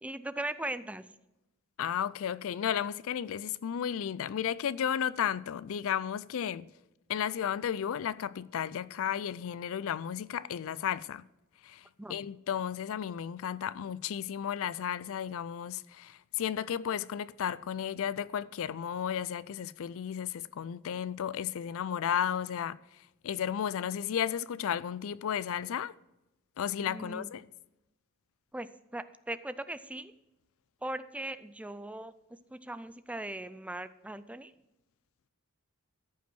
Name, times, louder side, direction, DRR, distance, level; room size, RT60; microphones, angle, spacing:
voice 1, 0.0-1.0 12.0-12.3 26.8-27.3 28.5-28.7 28.9-30.1 30.8-34.5, right 1 dB, 5° right, 0.4 m, -39 dB
voice 2, 1.8-6.7 7.1-11.2 11.6-25.9 26.6-27.5, left 9 dB, 65° left, 0.4 m, -33 dB
13.5 x 5.6 x 6.2 m
head